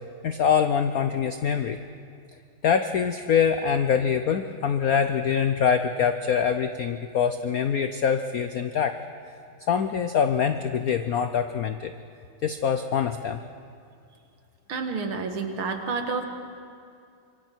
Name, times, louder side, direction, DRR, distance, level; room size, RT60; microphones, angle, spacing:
voice 1, 0.2-1.8 2.6-8.9 9.7-11.9 12.4-13.4, left 7 dB, 75° left, 8 dB, 0.8 m, -24 dB
voice 2, 14.7-16.2, right 4 dB, 75° right, 5 dB, 2.4 m, -29 dB
26.5 x 23.0 x 4.6 m, 2.4 s
omnidirectional pair, 2.4 m